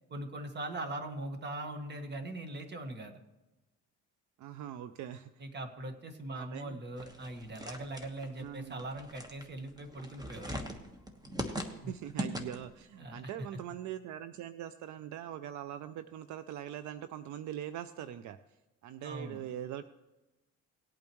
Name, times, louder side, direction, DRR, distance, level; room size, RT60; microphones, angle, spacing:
voice 1, 0.1-3.2 5.4-10.7 11.8-11.9 12.3-12.4 13.0-13.3 19.0-19.4, right 2 dB, 35° right, 6 dB, 1.6 m, -41 dB
voice 2, 4.4-5.4 6.3-6.8 8.4-8.8 11.7-18.4 18.8-19.8, right 11 dB, 70° right, 12 dB, 0.5 m, -42 dB
sound 1, 7.0-12.8, right 1 dB, 15° right, 1.3 m, -41 dB
19.0 x 8.6 x 3.1 m, 1.1 s
cardioid pair, 115°, 30 cm